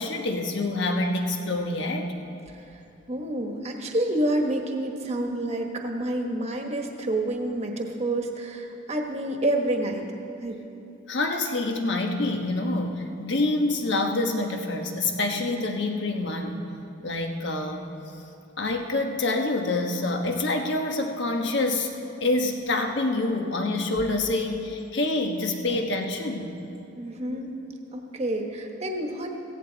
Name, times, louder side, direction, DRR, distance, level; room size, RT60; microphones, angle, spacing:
voice 1, 0.0-2.1 11.1-16.5 17.0-17.9 18.6-21.9 22.2-26.5 27.3-27.4, left 2 dB, 60° left, 3 dB, 1.3 m, -26 dB
voice 2, 3.1-10.0 10.4-10.6 26.9-27.6 27.9-29.3, right 1 dB, 30° right, 2 dB, 1.3 m, -28 dB
16.5 x 16.0 x 4.0 m, 2.7 s
head